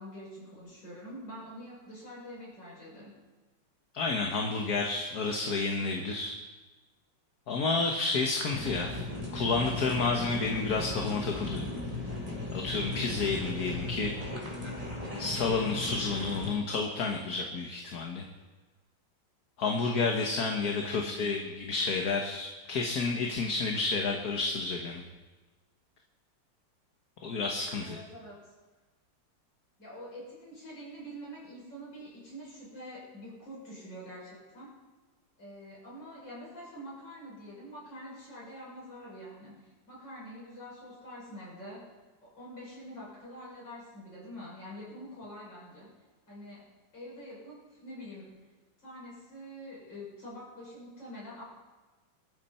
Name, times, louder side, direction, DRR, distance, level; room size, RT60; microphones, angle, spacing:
voice 1, 0.0-3.2 20.9-21.5 27.8-28.5 29.8-34.8 35.4-41.9 42.2-45.9 46.3-48.4 48.8-51.4, equal, 70° left, -5 dB, 7.4 m, -46 dB
voice 2, 3.9-6.3 7.5-9.0 9.3-11.6 12.5-14.1 15.2-18.2 19.6-25.0 27.2-28.0, left 4 dB, 55° left, 2 dB, 1.7 m, -30 dB
sound 1, 8.5-16.5, left 2 dB, 20° right, 2.8 m, -37 dB
21.5 x 13.5 x 4.4 m, 1.2 s
omnidirectional pair, 2.0 m